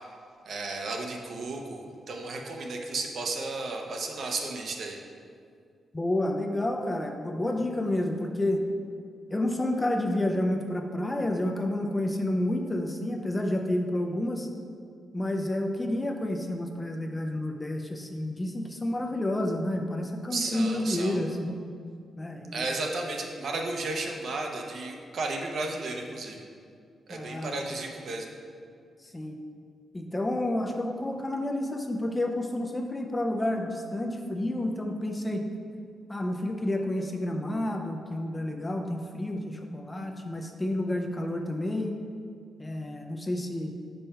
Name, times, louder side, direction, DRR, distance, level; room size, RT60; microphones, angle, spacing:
voice 1, 0.4-5.0 20.3-21.2 22.5-26.4 27.1-28.3, right 3 dB, 55° right, 2 dB, 0.7 m, -33 dB
voice 2, 5.9-8.6 9.3-14.5 15.1-21.5 22.2-22.7 27.1-27.6 29.0-29.4 29.9-35.5 36.1-42.0 42.6-43.7, left 1 dB, 15° left, 3 dB, 0.4 m, -30 dB
5.4 x 4.3 x 5.5 m, 2.3 s
wide cardioid pair, 140°, 0 cm